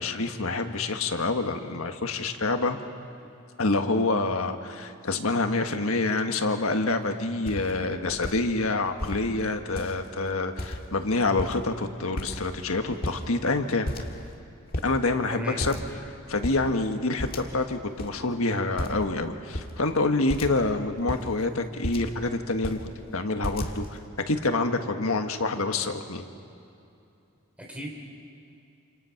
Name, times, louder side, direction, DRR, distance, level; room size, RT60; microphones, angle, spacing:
voice 1, 0.0-2.8 3.6-13.9 14.8-15.8 16.3-22.8 23.1-24.0 24.3-26.2, left 3 dB, 75° left, 6 dB, 1.6 m, -27 dB
sound 1, 7.0-7.1 7.4-7.7 8.1-8.4 9.0-9.2 9.7-10.1 10.6-11.0 11.3-11.8 12.2-12.6 12.9-13.6 13.8-14.4 14.7-14.9 15.6-16.0 16.3-16.6 17.2-17.7 18.0-18.1 18.8-19.1 19.5-19.7 20.3-20.6 21.0-22.2 22.5-22.9 23.4-24.0, left 1 dB, 45° left, 2.0 m, -34 dB
voice 2, 15.3-15.8 27.6-27.9, equal, 5° right, -1 dB, 3.9 m, -36 dB
28.0 x 28.0 x 5.9 m, 2.7 s
head